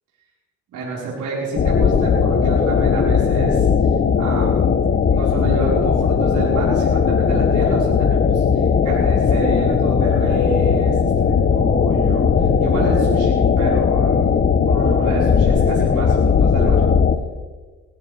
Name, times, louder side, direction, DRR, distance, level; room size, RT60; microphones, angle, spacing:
voice 1, 0.7-3.7 4.1-16.8, right 2 dB, 80° right, -7 dB, 5.0 m, -28 dB
sound 1, 1.6-17.2, left 6 dB, 35° left, 1.0 m, -17 dB
20.5 x 15.0 x 3.5 m, 1.3 s
cardioid pair, 90°, 30 cm